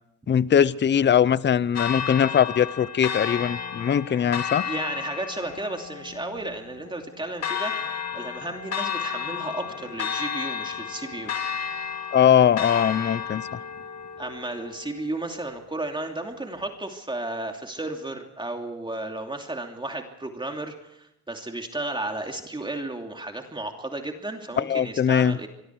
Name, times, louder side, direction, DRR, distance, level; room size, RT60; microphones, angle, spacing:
voice 1, 0.3-4.6 12.1-13.4 24.6-25.4, left 8 dB, 35° left, 18 dB, 0.7 m, -21 dB
Church bell, 1.8-15.8, left 7 dB, 55° left, 2.5 m, -33 dB
voice 2, 4.6-11.3 14.2-25.5, right 2 dB, 15° right, 3 dB, 2.8 m, -33 dB
26.0 x 23.5 x 4.7 m, 0.80 s
cardioid pair, 90°, 30 cm